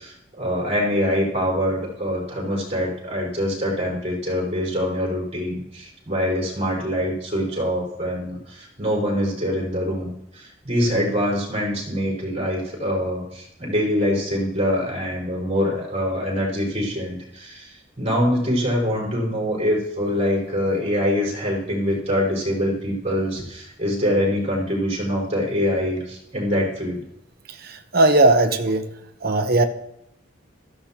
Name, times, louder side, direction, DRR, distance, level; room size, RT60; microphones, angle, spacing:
voice 1, 0.0-27.0, equal, 35° right, -4 dB, 4.9 m, -24 dB
voice 2, 27.6-28.9 29.2-29.6, right 2 dB, 50° right, 6 dB, 1.0 m, -18 dB
16.0 x 13.5 x 2.9 m, 0.79 s
head